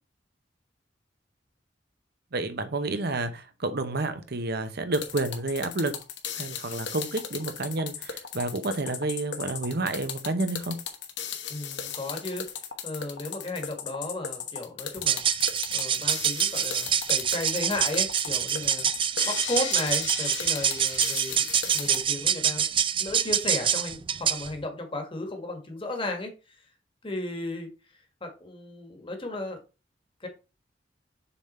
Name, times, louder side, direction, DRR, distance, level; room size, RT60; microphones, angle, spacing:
voice 1, 2.3-5.9 6.3-10.8, right 2 dB, 60° right, 1.0 m, -30 dB
sound 1, 4.9-22.0, left 7 dB, 75° left, 1.2 m, -36 dB
voice 2, 11.5-12.5 12.8-15.2 15.7-18.9 19.2-21.4 21.7-22.7 23.0-26.3 27.0-27.7 28.2-29.6 30.2-30.3, left 2 dB, 30° left, 1.6 m, -34 dB
sound 2, 15.0-24.5, right 9 dB, 30° right, 0.4 m, -26 dB
7.0 x 3.7 x 4.3 m
head